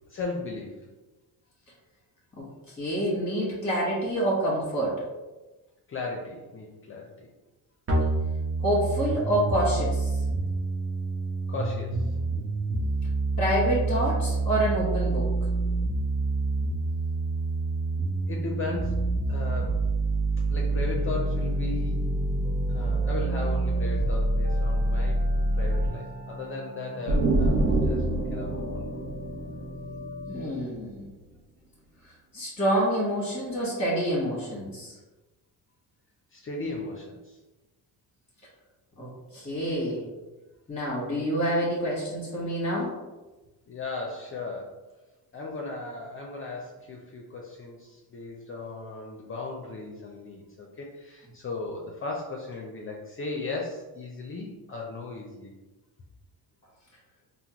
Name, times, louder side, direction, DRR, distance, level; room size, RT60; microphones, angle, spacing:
voice 1, 0.1-0.9 5.9-7.3 11.5-12.2 18.3-19.8 20.5-22.2 22.7-25.2 25.5-29.0 36.3-37.4 43.7-44.8 45.3-55.5, left 3 dB, 35° left, -1 dB, 0.5 m, -37 dB
voice 2, 2.8-5.0 8.6-10.1 13.4-15.3 30.3-31.1 32.3-34.9 39.0-40.1 40.7-42.9, right 1 dB, 15° left, -6 dB, 1.0 m, -27 dB
sound 1, 7.9-25.9, right 2 dB, 35° right, 0.8 m, -27 dB
sound 2, 20.6-30.5, equal, 65° right, 1.1 m, -41 dB
sound 3, 27.1-30.7, right 2 dB, 80° right, 0.6 m, -26 dB
3.6 x 2.0 x 2.8 m, 1.1 s
cardioid pair, 90°, 39 cm